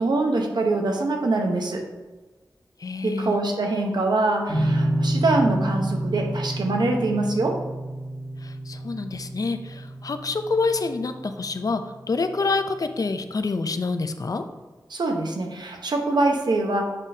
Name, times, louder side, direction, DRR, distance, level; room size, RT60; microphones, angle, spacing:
voice 1, 0.0-1.9 3.0-7.6 14.9-16.8, right 2 dB, 80° right, 2 dB, 1.0 m, -24 dB
voice 2, 2.8-3.4 8.4-14.5, left 3 dB, 55° left, 8 dB, 0.5 m, -27 dB
sound 1, 4.5-11.7, right 1 dB, 5° left, 1.6 m, -29 dB
8.1 x 5.3 x 2.7 m, 1.3 s
wide cardioid pair, 70°, 7 cm